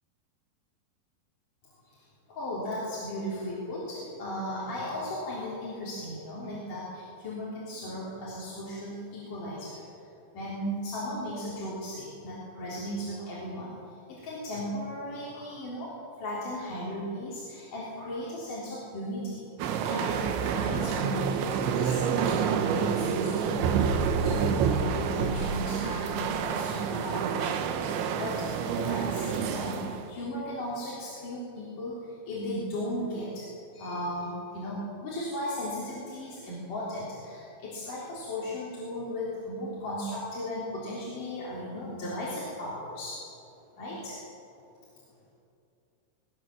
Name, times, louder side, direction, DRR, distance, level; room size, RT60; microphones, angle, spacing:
voice 1, 2.3-9.8 10.3-13.7 14.1-15.9 16.2-27.7 28.2-29.8 30.1-33.5 33.7-43.2 43.8-44.2, equal, 45° left, -7 dB, 5.3 m, -36 dB
sound 1, 19.6-30.1, right 7 dB, 80° right, 3.4 m, -28 dB
21.0 x 20.5 x 7.8 m, 2.7 s
omnidirectional pair, 5.3 m